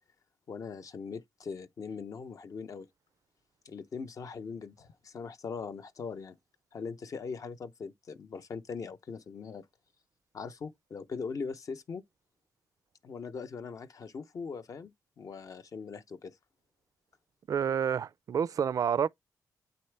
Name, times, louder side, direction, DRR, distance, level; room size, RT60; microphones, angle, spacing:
voice 1, 0.5-2.9 3.6-6.4 6.7-9.7 10.3-12.0 13.0-16.4, left 5 dB, 55° left, 0.8 m, -41 dB
voice 2, 17.5-19.1, right 7 dB, 55° right, 0.4 m, -29 dB
8.7 x 4.2 x 3.4 m
cardioid pair, 100°, 7 cm